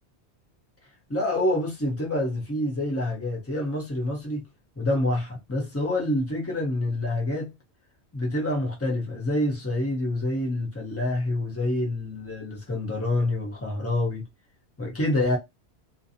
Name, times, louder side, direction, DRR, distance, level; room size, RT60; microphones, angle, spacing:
voice 1, 1.1-4.4 4.8-7.5 8.1-14.3 14.8-15.4, left 1 dB, 15° left, 0.8 m, -27 dB
2.6 x 2.0 x 2.7 m
omnidirectional pair, 1.1 m